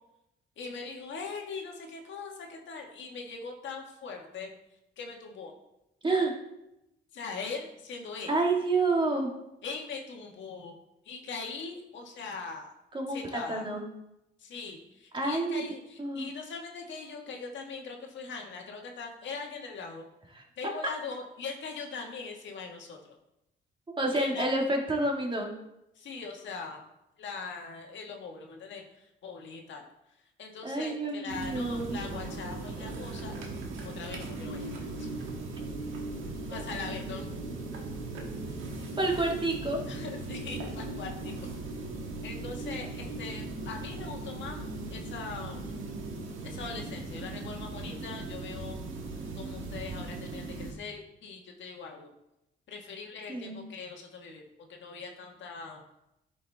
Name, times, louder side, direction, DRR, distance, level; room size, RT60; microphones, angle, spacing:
voice 1, 0.6-4.5 5.0-5.5 7.1-8.3 9.6-10.7 11.0-12.7 13.1-13.6 14.4-20.0 20.6-23.0 24.1-24.5 25.9-26.8 27.2-29.8 30.4-33.4 33.8-35.1 36.4-37.3 39.2-39.3 39.9-41.5 42.2-45.8 46.4-48.8 49.3-52.1 52.7-54.4 54.7-55.8, left 4 dB, 70° left, 1 dB, 1.6 m, -41 dB
voice 2, 6.0-6.3 8.3-9.3 12.9-13.8 15.1-15.6 16.0-16.3 20.3-20.4 24.0-25.5 30.6-32.0 39.0-39.8 53.3-53.6, right 2 dB, 25° right, 1 dB, 1.8 m, -29 dB
sound 1, 31.3-50.7, right 2 dB, 85° right, 1.5 m, -38 dB
11.5 x 5.3 x 3.4 m, 0.88 s
cardioid pair, 90°, 20 cm